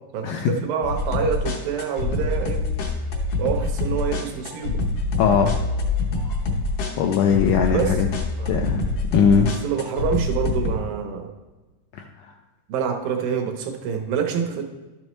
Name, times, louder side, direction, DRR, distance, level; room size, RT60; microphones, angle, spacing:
voice 1, 0.1-2.7 3.4-4.8 7.7-8.0 8.4-8.5 9.6-11.3 12.7-14.6, right 7 dB, 85° right, 3 dB, 2.6 m, -26 dB
sound 1, 0.8-10.7, left 3 dB, 65° left, 1.7 m, -25 dB
voice 2, 5.2-5.6 7.0-8.1 8.5-8.8 9.1-9.5, left 7 dB, 80° left, 2 dB, 1.9 m, -19 dB
12.0 x 6.3 x 3.1 m, 1.2 s
omnidirectional pair, 3.9 m